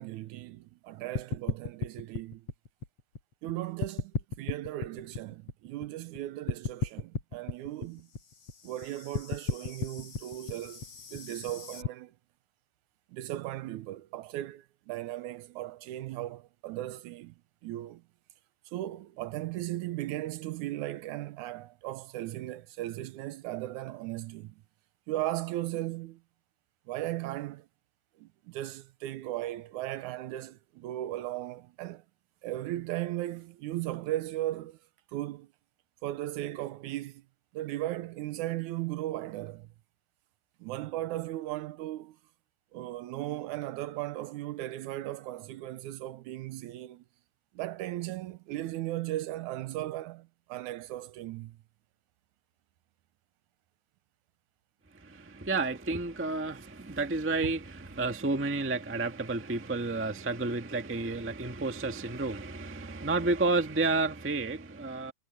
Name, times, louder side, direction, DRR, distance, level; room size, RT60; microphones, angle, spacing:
voice 1, 0.0-2.5 3.4-8.1 8.6-12.1 13.1-17.4 17.6-18.0 18.7-24.6 25.1-26.2 26.9-27.7 28.2-32.1 32.4-34.8 35.1-35.5 36.0-37.2 37.5-39.7 40.6-42.2 42.7-47.0 47.5-51.6, right 15 dB, 80° right, 2.1 m, -37 dB
sound 1, 1.2-3.5 3.8-6.2 6.5-11.9, left 4 dB, 55° left, 4.7 m, -35 dB
voice 2, 54.9-65.1, right 3 dB, 15° right, 0.4 m, -31 dB
omnidirectional pair, 3.5 m